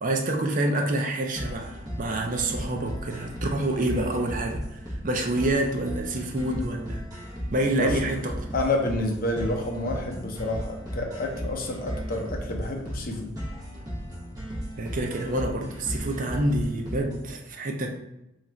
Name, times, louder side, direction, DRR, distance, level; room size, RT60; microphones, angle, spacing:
voice 1, 0.0-7.0 7.5-8.5 14.8-17.9, right 1 dB, 45° right, 2 dB, 0.5 m, -27 dB
sound 1, 1.4-17.3, equal, 20° right, 1.0 m, -35 dB
voice 2, 8.5-13.3, left 2 dB, 50° left, 1 dB, 0.6 m, -29 dB
2.9 x 2.5 x 4.3 m, 0.88 s
head